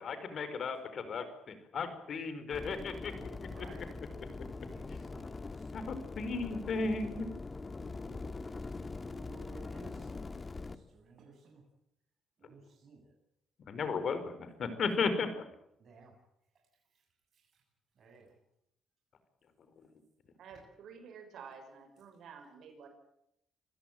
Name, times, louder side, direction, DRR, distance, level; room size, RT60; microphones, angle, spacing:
voice 1, 0.0-3.7 5.7-7.3 13.7-15.4, left 4 dB, 60° left, 10 dB, 4.6 m, -35 dB
sound 1, 2.5-10.8, left 3 dB, 25° left, 1.7 m, -43 dB
voice 2, 3.5-3.9 4.7-5.9 7.8-8.7 9.0-10.2 10.6-11.6 12.4-13.1 15.8-16.2 17.3-17.6 18.0-18.4 20.5-20.6, right 4 dB, 55° right, 0 dB, 7.6 m, -57 dB
voice 3, 20.4-22.9, right 6 dB, 70° right, 7 dB, 5.8 m, -51 dB
26.5 x 16.0 x 9.1 m, 0.79 s
cardioid pair, 90°, 0 cm